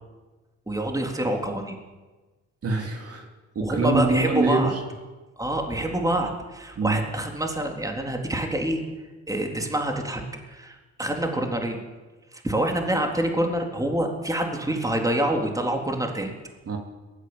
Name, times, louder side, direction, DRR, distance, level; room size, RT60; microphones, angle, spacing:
voice 1, 0.7-1.8 3.6-4.7 5.4-8.8 9.3-11.8 12.3-16.3, right 1 dB, 10° right, 2 dB, 3.7 m, -26 dB
voice 2, 2.6-3.3 3.6-4.7 6.8-7.0 16.7-16.8, right 3 dB, 50° right, 2 dB, 3.6 m, -24 dB
22.5 x 17.0 x 8.1 m, 1.2 s
cardioid pair, 90°, 30 cm